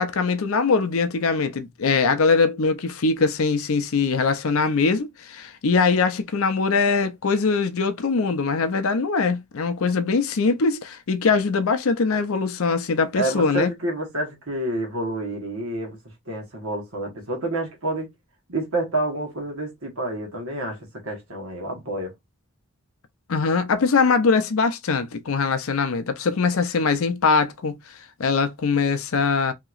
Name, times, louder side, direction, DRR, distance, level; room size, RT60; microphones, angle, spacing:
voice 1, 0.0-13.7 23.3-27.8 28.2-29.5, left 4 dB, 75° left, 0.5 m, -22 dB
voice 2, 13.1-16.0 16.3-18.1 18.5-20.8 21.0-22.1, right 2 dB, 75° right, 1.4 m, -28 dB
2.9 x 2.8 x 2.4 m
head